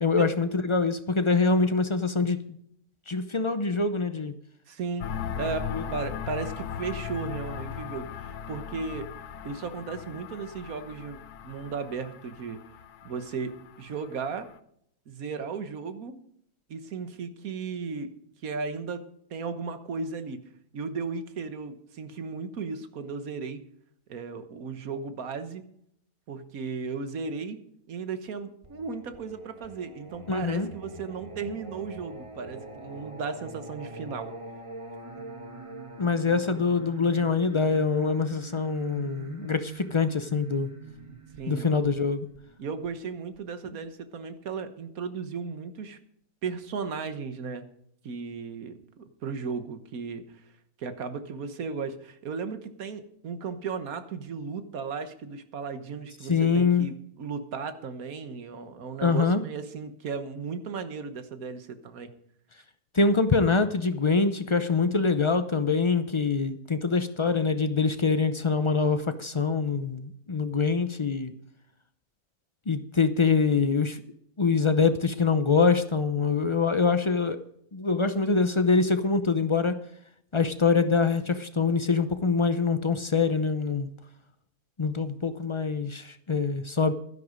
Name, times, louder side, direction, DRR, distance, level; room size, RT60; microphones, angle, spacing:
voice 1, 0.0-2.4 3.1-4.3 5.7-5.8 30.3-30.7 36.0-40.7 41.5-42.3 56.3-56.9 59.0-59.4 62.9-71.3 72.7-74.0 74.4-77.4 77.7-79.8 80.3-83.9 84.8-86.9, left 4 dB, 50° left, 10 dB, 0.3 m, -24 dB
voice 2, 4.7-5.1 5.4-9.1 9.4-12.6 13.0-14.5 15.1-16.2 16.7-18.1 18.4-19.0 19.3-23.7 24.1-25.6 26.3-27.6 27.9-34.3 41.4-41.7 42.6-46.0 46.4-47.7 48.0-50.4 50.8-62.1, right 5 dB, 70° right, 10 dB, 1.6 m, -35 dB
sound 1, 5.0-14.5, left 8 dB, 85° left, 1.2 m, -38 dB
Singing, 28.6-43.4, right 2 dB, 20° right, 1.5 m, -44 dB
12.0 x 11.0 x 5.1 m, 0.71 s
omnidirectional pair, 1.6 m